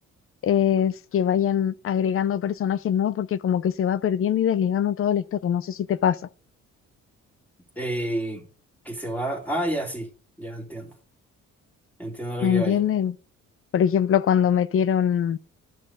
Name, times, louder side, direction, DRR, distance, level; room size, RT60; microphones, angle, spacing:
voice 1, 0.4-6.2 12.4-13.1 13.7-15.4, left 9 dB, 45° left, 0.5 m, -23 dB
voice 2, 7.8-8.4 8.8-10.1 10.4-10.9 12.0-12.8, right 1 dB, 5° left, 2.8 m, -29 dB
11.0 x 6.1 x 5.0 m
cardioid pair, 90°, 30 cm